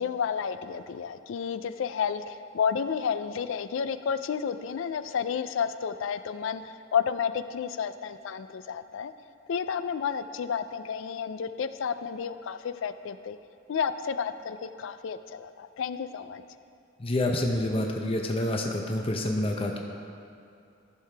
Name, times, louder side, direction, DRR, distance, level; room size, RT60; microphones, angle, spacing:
voice 1, 0.0-9.1 9.5-13.4 13.7-16.4, left 7 dB, 70° left, 12 dB, 0.4 m, -31 dB
voice 2, 17.0-19.8, left 1 dB, 30° left, 1 dB, 0.6 m, -28 dB
14.0 x 6.5 x 3.4 m, 2.6 s
head